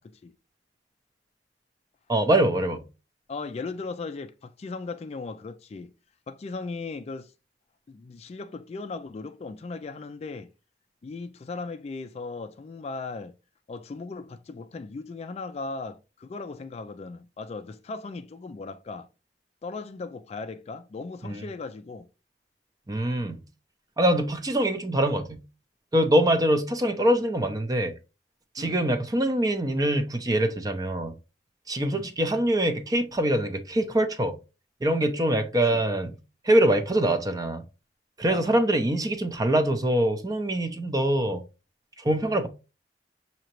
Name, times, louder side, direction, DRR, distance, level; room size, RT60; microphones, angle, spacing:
voice 1, 2.1-2.8 21.3-21.5 22.9-23.4 24.0-25.4 25.9-27.9 28.6-31.1 31.7-34.4 34.8-36.2 36.4-37.6 38.2-41.4 42.0-42.5, right 1 dB, 20° right, 0.6 m, -24 dB
voice 2, 3.3-5.9 6.3-7.3 7.9-10.5 11.0-13.3 13.7-19.1 19.6-22.1 28.6-28.8 31.9-32.1 35.7-35.8 38.3-38.6, left 3 dB, 35° left, 0.3 m, -37 dB
6.2 x 2.8 x 2.9 m
head